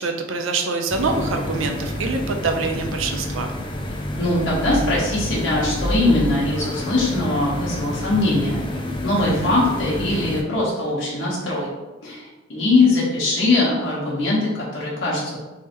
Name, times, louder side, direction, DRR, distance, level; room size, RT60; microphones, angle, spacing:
voice 1, 0.0-3.5 9.2-9.5, right 3 dB, 75° right, 4 dB, 0.5 m, -25 dB
Room Tone Office Quiet Distant Traffic, 0.9-10.4, left 1 dB, 25° left, 0.4 m, -28 dB
voice 2, 4.2-8.6 9.0-11.7 12.0-15.4, left 2 dB, 70° left, -7 dB, 1.1 m, -21 dB
3.4 x 3.2 x 3.0 m, 1.1 s
head